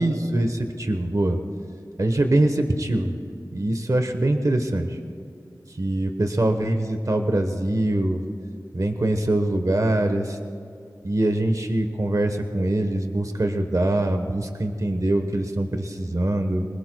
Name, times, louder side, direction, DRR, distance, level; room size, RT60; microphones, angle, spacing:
voice 1, 0.0-1.4 2.0-3.1 3.5-5.0 5.8-8.2 8.7-10.4 11.0-16.7, right 1 dB, 50° right, 6 dB, 1.1 m, -23 dB
26.0 x 20.0 x 2.3 m, 2.4 s
wide cardioid pair, 45°, 7 cm